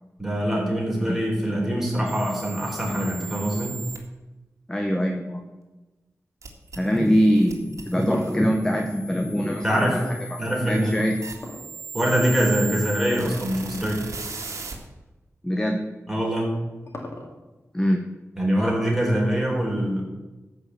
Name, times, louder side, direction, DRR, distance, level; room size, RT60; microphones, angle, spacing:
voice 1, 0.2-3.8 9.6-10.0 10.4-10.9 11.9-14.0 16.1-16.5 18.4-20.0, equal, 5° right, -3 dB, 4.4 m, -24 dB
sound 1, 2.1-4.0 6.4-14.8, right 4 dB, 85° right, 1.9 m, -38 dB
voice 2, 4.7-5.4 6.8-10.0 10.3-10.4 10.7-11.2 15.4-15.8 17.7-18.0, equal, 10° left, 3 dB, 1.1 m, -23 dB
sound 2, 7.7-10.0 11.4-12.3 13.0-13.5 13.8-13.9 14.7-14.8 16.1-17.6, left 2 dB, 55° left, 2.2 m, -40 dB
13.5 x 5.4 x 8.2 m, 1.1 s
wide cardioid pair, 100°, 5 cm